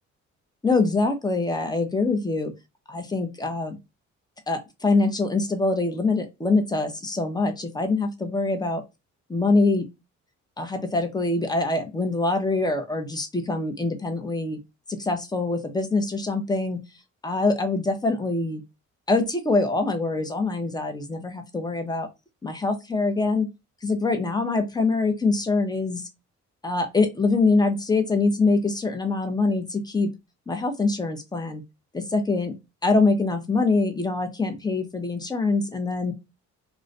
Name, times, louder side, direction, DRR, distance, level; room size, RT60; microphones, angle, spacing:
voice 1, 0.6-2.5 2.9-3.8 4.5-8.8 9.3-9.8 10.6-14.6 14.9-16.8 17.2-18.6 19.1-22.1 22.4-23.5 23.8-26.0 26.6-30.1 30.5-31.6 31.9-32.5 32.8-36.1, left 3 dB, 15° left, 0.6 m, -24 dB
2.3 x 2.1 x 2.5 m
cardioid pair, 90°, 30 cm